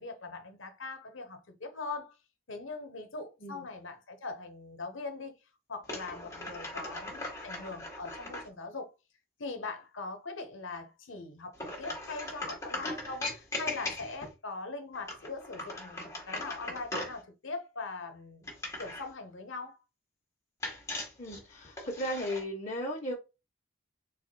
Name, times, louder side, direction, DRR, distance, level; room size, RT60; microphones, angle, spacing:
voice 1, 0.0-2.1 2.5-5.3 5.7-8.9 9.4-18.5 18.8-19.8, left 3 dB, 75° left, 1.0 m, -41 dB
sound 1, 5.8-8.5 11.5-14.3 14.9-17.2 18.4-19.1 20.6-22.4, left 2 dB, 15° left, 1.6 m, -39 dB
voice 2, 21.2-23.1, equal, 40° left, 1.1 m, -36 dB
4.2 x 4.2 x 2.2 m
head